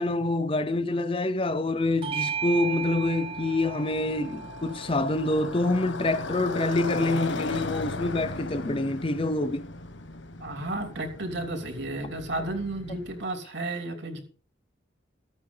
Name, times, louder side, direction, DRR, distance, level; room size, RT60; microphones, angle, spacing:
voice 1, 0.0-9.7, left 2 dB, 30° left, 0.7 m, -26 dB
Motorcycle, 1.8-13.2, left 2 dB, 85° left, 1.5 m, -37 dB
Bell / Doorbell, 2.0-6.9, right 7 dB, 30° right, 0.5 m, -36 dB
voice 2, 10.4-14.2, right 2 dB, 70° right, 3.2 m, -33 dB
14.5 x 8.8 x 5.5 m
head